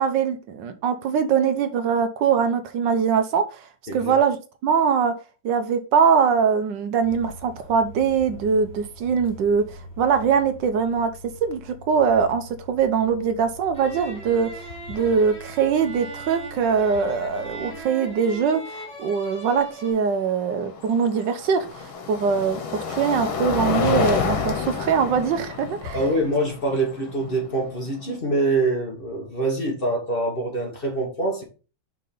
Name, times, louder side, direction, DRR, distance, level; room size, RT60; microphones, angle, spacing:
voice 1, 0.0-3.7 3.9-4.4 4.6-5.1 5.4-11.1 11.4-14.5 14.9-26.0, right 6 dB, 70° right, 1.3 m, -22 dB
sound 1, 7.0-17.8, left 1 dB, 65° left, 2.2 m, -44 dB
sound 2, 13.7-19.9, right 2 dB, 5° left, 2.4 m, -39 dB
sound 3, 14.3-14.4 14.7-15.1 17.0-17.1 20.0-28.2, left 6 dB, 90° left, 1.9 m, -29 dB
voice 2, 25.9-31.4, right 2 dB, 30° left, 1.5 m, -25 dB
5.6 x 3.7 x 5.3 m
omnidirectional pair, 2.1 m